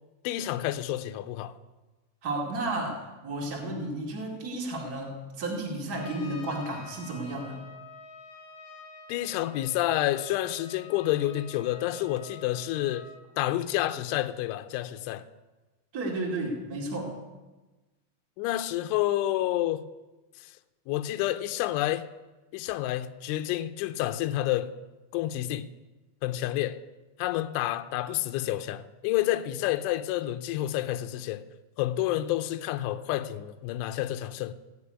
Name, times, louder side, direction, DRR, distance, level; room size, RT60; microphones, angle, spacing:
voice 1, 0.2-1.5 9.1-13.1 13.4-15.3 18.4-19.8 20.4-20.5 20.9-22.0 22.5-24.7 25.1-25.7 26.2-26.8 27.2-31.4 31.8-34.5, left 14 dB, 85° left, 2.8 m, -29 dB
voice 2, 2.2-7.6 15.9-17.2, right 2 dB, 75° right, 0.8 m, -33 dB
Trumpet, 5.9-13.2, left 3 dB, 65° left, 2.6 m, -48 dB
15.5 x 6.8 x 9.6 m
omnidirectional pair, 5.8 m